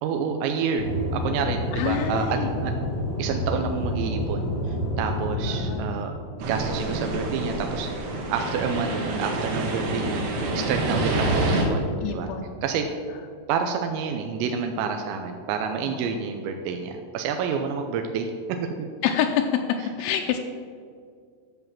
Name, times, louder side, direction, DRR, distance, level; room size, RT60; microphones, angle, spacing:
voice 1, 0.0-2.7 3.2-6.2 6.5-10.2 10.5-12.3 12.6-12.9 13.5-18.6, right 6 dB, 80° right, 5 dB, 2.7 m, -29 dB
Aircraft / Engine, 0.8-5.8, left 1 dB, 55° left, 1.6 m, -28 dB
voice 2, 1.7-2.5 5.5-5.9 12.0-12.5 15.8-16.0 19.0-19.5 20.0-20.4, left 9 dB, 85° left, 4 dB, 2.9 m, -27 dB
sound 1, 6.4-11.6, right 2 dB, 65° right, 3.4 m, -27 dB
12.5 x 5.6 x 7.4 m, 2.2 s
omnidirectional pair, 5.7 m